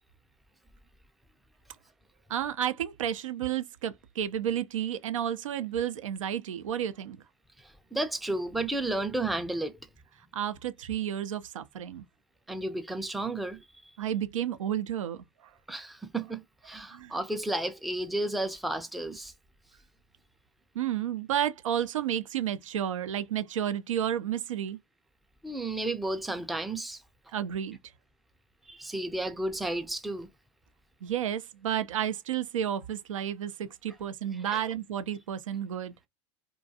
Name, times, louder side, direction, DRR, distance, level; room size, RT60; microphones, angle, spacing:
voice 1, 2.3-7.2 10.3-12.0 14.0-15.5 16.9-17.2 20.7-24.8 27.3-27.8 31.0-35.9, right 10 dB, 80° right, 0.4 m, -31 dB
voice 2, 7.6-9.8 12.5-13.9 15.7-19.3 25.4-27.0 28.7-30.3 34.4-34.6, right 2 dB, ahead, 0.4 m, -32 dB
2.5 x 2.2 x 2.6 m
hypercardioid pair, 90°, 16 cm